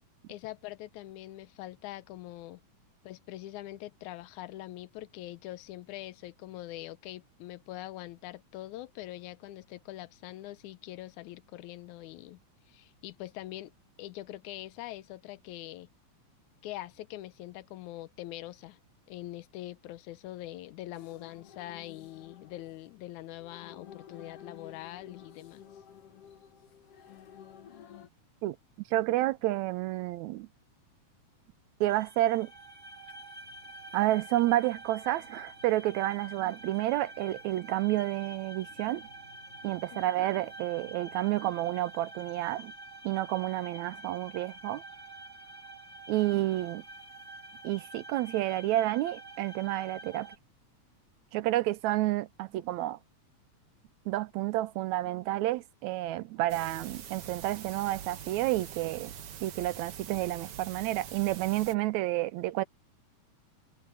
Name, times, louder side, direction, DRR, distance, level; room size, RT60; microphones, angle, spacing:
voice 1, 0.3-2.6 3.0-12.4 12.7-13.7 14.0-15.9 16.6-18.8 19.1-25.6 39.9-40.1, left 15 dB, 90° left, 2.1 m, -43 dB
sound 1, 20.9-28.1, left 9 dB, 60° left, 2.1 m, -52 dB
voice 2, 28.9-30.5 31.8-32.5 33.9-39.0 39.6-42.7 43.0-44.8 46.1-46.8 47.6-50.3 51.3-53.0 54.1-59.1 59.4-62.6, right 16 dB, 80° right, 1.9 m, -30 dB
sound 2, 31.8-50.4, right 2 dB, 20° right, 5.6 m, -48 dB
sound 3, 56.5-61.7, right 8 dB, 60° right, 1.9 m, -44 dB
omnidirectional pair, 3.4 m